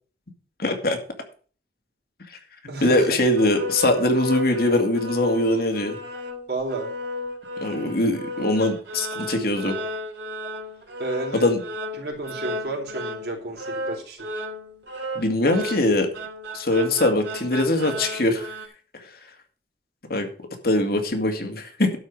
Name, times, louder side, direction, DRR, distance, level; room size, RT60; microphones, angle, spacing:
voice 1, 0.6-1.0 2.8-6.0 7.6-9.8 11.3-11.6 15.2-16.1 16.5-18.5 20.1-20.3 20.6-21.9, left 1 dB, 60° left, 4 dB, 2.2 m, -22 dB
voice 2, 2.7-3.2 6.5-6.9 11.0-11.5 11.9-14.3, right 2 dB, 65° right, 0 dB, 4.1 m, -31 dB
sound 1, 3.3-18.7, left 1 dB, 85° right, 3.0 m, -34 dB
12.0 x 4.9 x 7.6 m, 0.41 s
head